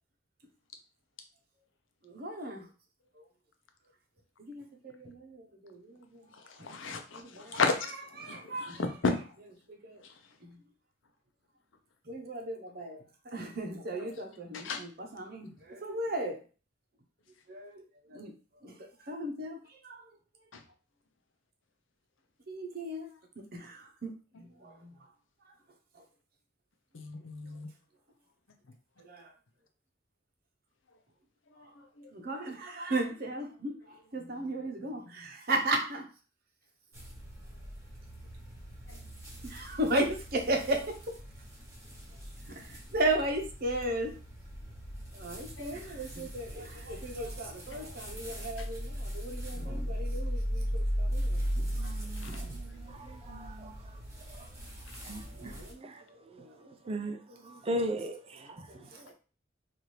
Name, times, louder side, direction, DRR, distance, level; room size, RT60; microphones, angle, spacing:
voice 1, 2.0-2.7 3.2-3.3 4.4-6.2 6.6-6.7 7.1-7.6 8.2-8.8 9.7-10.0 12.1-13.0 13.3-16.4 17.5-18.3 18.6-18.8 19.1-20.0 22.5-23.1 23.4-24.1 24.6-24.9 27.4-27.5 29.0-29.3 31.6-31.7 32.1-36.0 39.4-40.8 42.5-44.1 45.1-51.7 52.2-52.6 55.3-57.2 57.4-57.6 58.4-59.1, right 1 dB, 50° right, 3 dB, 0.8 m, -36 dB
voice 2, 6.5-7.9 8.1-9.2 10.0-10.1 14.5-14.8 20.5-20.6 26.9-27.7 32.0-32.1 38.9-39.0 45.6-45.7 51.8-51.9 52.2-52.4, left 4 dB, 80° left, 6 dB, 0.6 m, -33 dB
sound 1, 36.9-55.7, equal, 15° right, 1.1 m, -38 dB
voice 3, 51.8-53.9 54.3-54.5 55.0-56.0 56.9-57.2 57.4-58.7, right 1 dB, 30° right, 6 dB, 0.4 m, -38 dB
4.2 x 2.6 x 3.2 m, 0.36 s
head